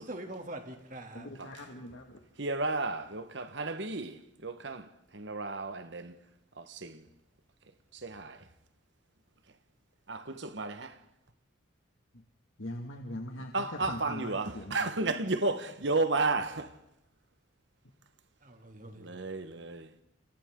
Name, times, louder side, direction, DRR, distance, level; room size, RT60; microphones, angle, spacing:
voice 1, 0.1-1.3 18.4-19.2, right 1 dB, 40° right, 2.8 m, -43 dB
voice 2, 1.1-2.2 12.1-12.2 12.6-15.1, left 1 dB, 75° left, 2.2 m, -41 dB
voice 3, 2.4-4.9 5.1-6.2 6.6-7.0 7.9-8.4 10.1-10.9 13.5-16.7 19.0-20.0, right 3 dB, 60° right, 1.4 m, -33 dB
29.5 x 28.5 x 3.8 m
head